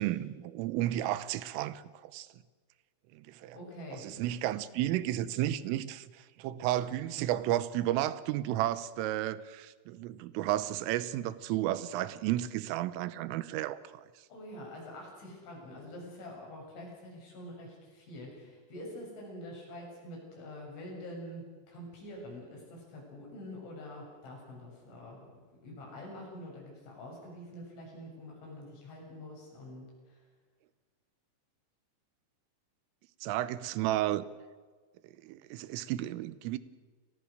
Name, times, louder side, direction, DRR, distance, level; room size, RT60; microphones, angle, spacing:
voice 1, 0.0-2.3 3.1-3.6 3.9-14.0 33.2-34.3 35.2-36.6, right 13 dB, 90° right, 3.5 m, -32 dB
voice 2, 3.5-4.0 14.3-25.3 25.6-30.2, left 1 dB, 65° left, 9.7 m, -46 dB
30.0 x 20.0 x 6.6 m
omnidirectional pair, 5.7 m